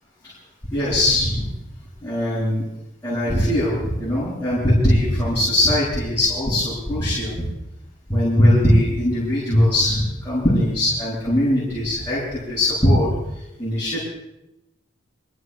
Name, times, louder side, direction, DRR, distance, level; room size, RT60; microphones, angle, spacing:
voice 1, 0.7-1.5 2.0-2.6 3.0-7.5 8.1-13.1 13.6-14.0, left 1 dB, 10° left, -11 dB, 7.8 m, -20 dB
29.0 x 16.0 x 2.3 m, 0.87 s
head